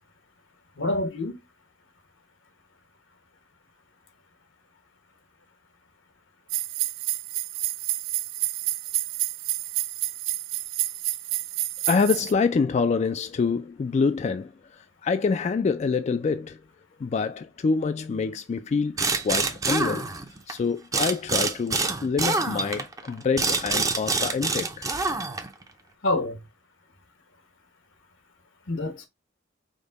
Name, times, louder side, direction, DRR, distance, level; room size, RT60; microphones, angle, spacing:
voice 1, 0.8-1.4 26.0-26.4 28.7-29.1, left 2 dB, 85° left, 1.2 m, -26 dB
sound 1, 6.5-12.3, right 17 dB, 90° right, 0.3 m, -29 dB
voice 2, 11.9-16.6 17.0-20.2 20.5-24.9, left 5 dB, 35° left, 0.3 m, -26 dB
sound 2, 19.0-20.5 20.9-25.6, right 3 dB, 20° right, 0.6 m, -26 dB
5.1 x 2.2 x 3.9 m
head